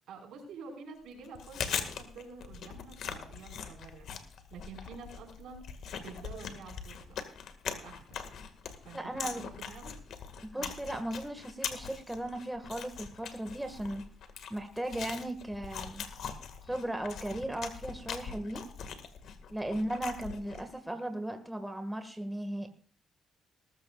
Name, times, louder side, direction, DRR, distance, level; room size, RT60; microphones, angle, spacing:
voice 1, 0.1-5.6 6.0-7.2 7.7-8.2 8.8-9.9 10.5-10.8, right 4 dB, 80° right, 2 dB, 5.2 m, -48 dB
Chewing mastication, 1.2-20.8, left 7 dB, 70° left, 1.9 m, -42 dB
voice 2, 8.9-9.4 10.4-14.0 14.5-16.1 16.7-18.7 19.5-22.7, right 1 dB, 5° right, 6 dB, 1.9 m, -36 dB
19.5 x 14.0 x 2.5 m, 0.43 s
cardioid pair, 90°, 0 cm